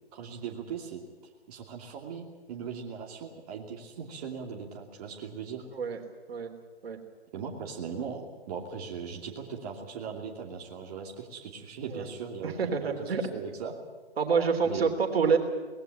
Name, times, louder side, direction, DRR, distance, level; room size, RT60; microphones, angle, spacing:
voice 1, 0.1-1.0 1.5-5.7 7.3-12.5 12.8-13.7 14.6-14.9, right 6 dB, 35° right, -1 dB, 2.8 m, -39 dB
voice 2, 12.4-13.2 14.2-15.4, right 5 dB, 70° right, 5 dB, 3.5 m, -27 dB
20.0 x 17.0 x 9.0 m, 1.4 s
hypercardioid pair, 145°, 32 cm